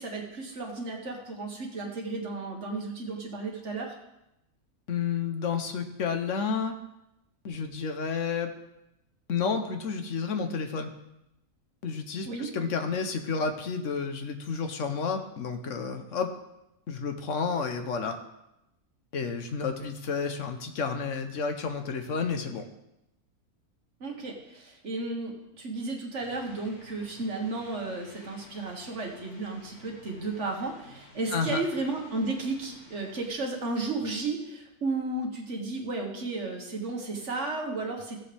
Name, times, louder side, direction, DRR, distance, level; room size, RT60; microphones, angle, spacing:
voice 1, 0.0-4.0 12.3-12.5 24.0-38.2, right 3 dB, 50° right, 0 dB, 1.9 m, -33 dB
voice 2, 4.9-6.8 7.4-8.5 9.3-10.9 11.8-16.3 16.9-18.2 19.1-22.6 31.3-31.6, left 5 dB, 60° left, 6 dB, 1.2 m, -31 dB
sound 1, 26.2-33.3, left 2 dB, 80° left, 1.9 m, -53 dB
14.5 x 7.5 x 3.4 m, 0.89 s
omnidirectional pair, 1.6 m